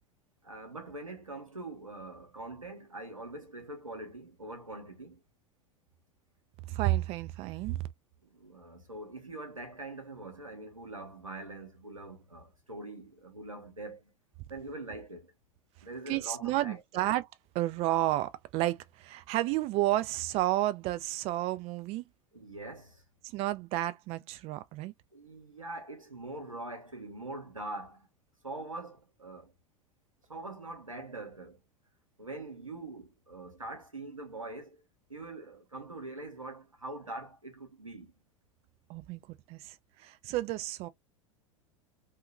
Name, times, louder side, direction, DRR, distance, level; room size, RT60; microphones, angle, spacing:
voice 1, 0.4-5.2 8.2-14.1 14.5-15.3 15.8-17.1 22.3-23.0 25.1-28.1 28.4-29.5 30.3-31.6 32.2-34.8 35.1-38.1, right 2 dB, 90° right, 0.9 m, -43 dB
voice 2, 6.7-7.8 16.1-17.3 17.5-22.0 23.2-24.9 38.9-39.2 39.5-40.9, right 16 dB, 35° right, 0.4 m, -31 dB
2.7 x 2.4 x 2.2 m
figure-of-eight pair, 85°, 17 cm